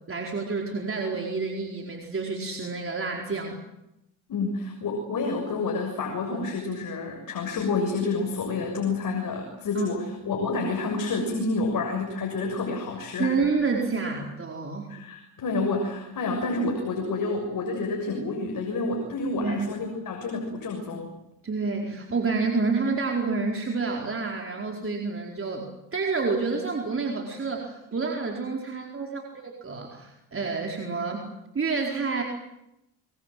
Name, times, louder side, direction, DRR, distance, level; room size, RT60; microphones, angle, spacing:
voice 1, 0.1-3.6 9.7-9.9 13.2-14.9 19.4-19.7 21.4-31.3 31.5-32.2, right 4 dB, 30° right, 1 dB, 4.5 m, -29 dB
voice 2, 4.3-13.4 14.9-21.1, left 3 dB, 50° left, 2 dB, 6.9 m, -29 dB
25.0 x 24.0 x 7.7 m, 0.87 s
supercardioid pair, 70°, 41 cm